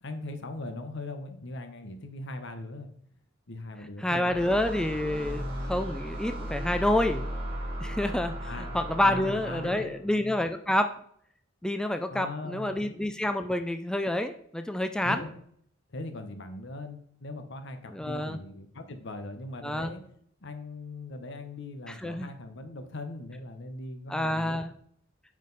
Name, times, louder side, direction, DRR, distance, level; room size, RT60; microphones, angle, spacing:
voice 1, 0.0-2.9 3.5-4.4 8.4-8.8 9.0-10.0 12.1-12.8 15.0-15.4 15.9-20.0 20.4-24.7, left 2 dB, 65° left, 7 dB, 1.1 m, -40 dB
voice 2, 4.0-7.3 7.8-8.3 8.7-10.9 11.6-15.2 17.9-18.4 19.6-19.9 21.9-22.3 24.1-24.7, left 1 dB, 5° left, 8 dB, 0.3 m, -28 dB
sound 1, 4.3-10.0, equal, 30° right, 2.3 m, -36 dB
9.4 x 5.0 x 4.0 m, 0.65 s
head